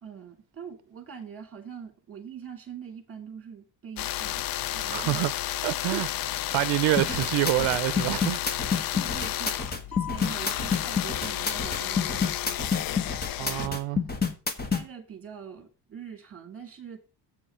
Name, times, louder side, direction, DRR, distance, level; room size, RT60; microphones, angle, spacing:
voice 1, 0.0-4.5 4.7-5.3 5.8-6.3 6.9-7.2 8.8-9.6 9.9-12.6 13.4-13.8 14.7-17.0, right 7 dB, 30° right, 2.5 m, -43 dB
sound 1, 4.0-13.7, left 13 dB, 50° left, 0.5 m, -32 dB
voice 2, 4.9-5.3 5.6-6.1 6.5-8.4 8.7-8.9 13.4-14.0, right 18 dB, 90° right, 0.6 m, -27 dB
sound 2, 7.0-14.8, left 5 dB, 20° left, 1.2 m, -28 dB
8.0 x 5.4 x 6.7 m
cardioid pair, 135°, 44 cm